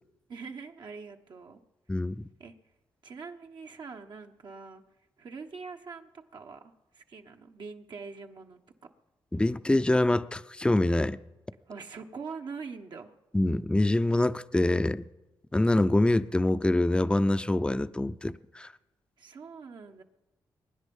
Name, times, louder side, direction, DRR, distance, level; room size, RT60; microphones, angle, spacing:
voice 1, 0.3-1.6 2.4-2.5 3.0-4.8 5.2-8.6 11.6-13.1 19.2-20.0, right 5 dB, 65° right, 1.2 m, -43 dB
voice 2, 1.9-2.3 9.3-11.2 13.3-15.1 15.5-18.7, left 1 dB, 10° left, 0.6 m, -25 dB
23.0 x 10.0 x 5.4 m
supercardioid pair, 55°, 8 cm